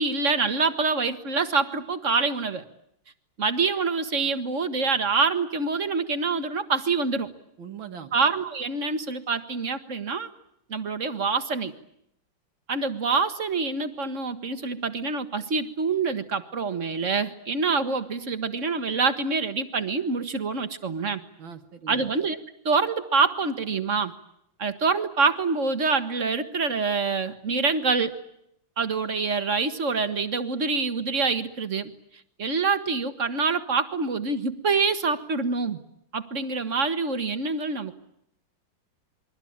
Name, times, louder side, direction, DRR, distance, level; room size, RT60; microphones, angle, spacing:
voice 1, 0.0-2.6 3.4-7.3 8.1-10.3 10.7-11.7 12.7-21.2 21.9-22.4 22.7-24.1 24.6-28.2 28.8-31.9 32.4-35.8 36.1-37.9, right 4 dB, 40° right, 10 dB, 1.8 m, -26 dB
voice 2, 7.6-8.1 21.4-22.1, right 7 dB, 70° right, 5 dB, 2.2 m, -41 dB
28.0 x 23.0 x 8.8 m, 0.76 s
omnidirectional pair, 2.2 m